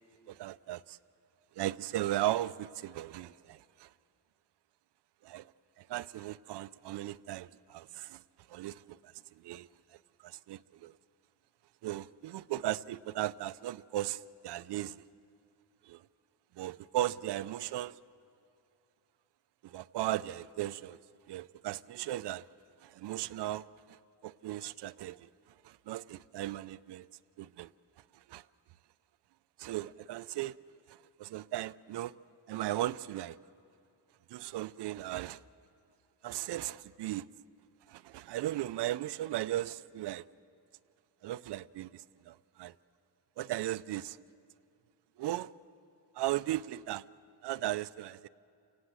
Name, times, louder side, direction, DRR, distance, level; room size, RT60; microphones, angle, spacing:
voice 1, 0.3-1.0 1.6-3.9 5.2-5.5 5.8-8.2 8.5-9.7 10.2-10.9 11.8-15.0 15.8-16.0 16.6-18.0 19.6-21.0 21.3-22.5 22.8-25.3 25.6-27.1 27.4-27.7 28.3-28.4 29.6-30.6 30.9-32.1 32.5-33.4 34.3-35.4 36.2-37.2 37.9-40.2 41.2-42.7 43.4-44.2 45.2-45.5 46.2-47.0 47.4-48.3, right 14 dB, 75° right, 0.6 m, -37 dB
28.5 x 18.0 x 7.7 m
wide cardioid pair, 145°, 42 cm